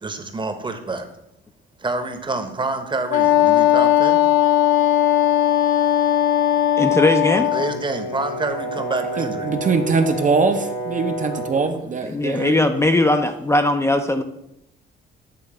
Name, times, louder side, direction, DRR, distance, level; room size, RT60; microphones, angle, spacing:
voice 1, 0.0-1.1 1.8-4.2 7.5-9.5 12.4-12.5 13.0-13.1, right 3 dB, 25° right, 7 dB, 0.9 m, -27 dB
Wind instrument woodwind instrument, 3.1-7.8, left 11 dB, 90° left, 0.6 m, -17 dB
voice 2, 6.8-7.5 12.1-14.2, left 2 dB, 15° left, 6 dB, 0.4 m, -19 dB
Brass instrument, 7.4-11.7, right 1 dB, 65° left, 1.2 m, -30 dB
voice 3, 9.2-12.7, right 4 dB, 40° right, 6 dB, 0.6 m, -22 dB
8.6 x 3.1 x 4.8 m, 0.81 s
cardioid pair, 90°, 20 cm